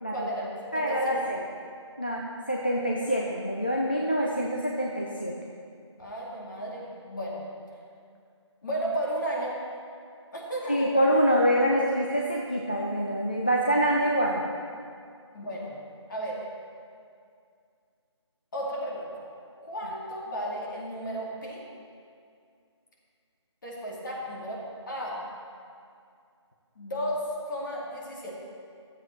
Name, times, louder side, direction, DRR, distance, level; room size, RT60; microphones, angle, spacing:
voice 1, 0.1-1.2 6.0-7.4 8.6-9.6 10.3-10.9 15.3-15.8 16.1-16.4 18.5-19.2 19.6-21.6 23.6-25.2 26.8-28.3, equal, 40° left, -4 dB, 2.5 m, -34 dB
voice 2, 0.7-1.4 2.0-5.4 10.7-14.4, equal, 20° left, -2 dB, 0.4 m, -25 dB
13.0 x 7.6 x 4.4 m, 2.3 s
figure-of-eight pair, 175°, 15 cm